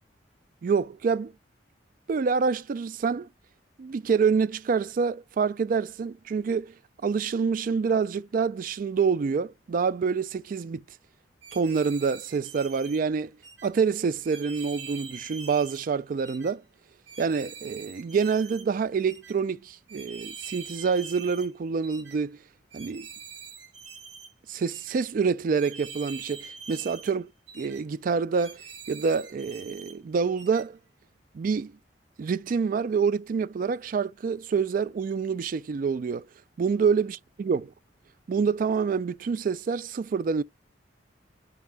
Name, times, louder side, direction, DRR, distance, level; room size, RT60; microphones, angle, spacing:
voice 1, 0.6-1.3 2.1-3.3 3.8-6.7 7.0-10.8 11.5-13.3 13.6-16.6 17.2-22.4 22.7-23.1 24.5-28.6 28.9-30.8 31.3-31.7 32.2-36.2 36.6-37.7 38.3-40.4, right 5 dB, 50° right, 0.3 m, -27 dB
sound 1, 11.4-13.0 13.4-13.7 14.2-15.8 16.2-16.5 17.1-18.7 19.1-19.3 19.9-21.5 21.8-22.2 22.7-24.3 24.7-25.0 25.5-27.1 27.5-27.8 28.3-29.9 30.4-30.6, right 5 dB, 80° right, 1.6 m, -44 dB
10.5 x 3.6 x 3.5 m
head